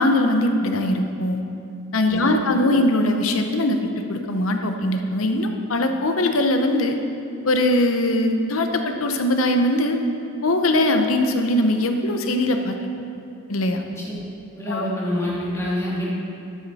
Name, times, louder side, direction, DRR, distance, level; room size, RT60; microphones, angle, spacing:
voice 1, 0.0-1.4 1.9-7.0 7.4-10.0 10.4-12.8 13.5-13.8 14.7-14.9, left 1 dB, 75° left, 5 dB, 0.8 m, -21 dB
voice 2, 2.1-2.7 13.8-14.2 14.5-16.0, left 1 dB, 15° left, -7 dB, 2.3 m, -27 dB
12.5 x 7.2 x 4.2 m, 2.5 s
head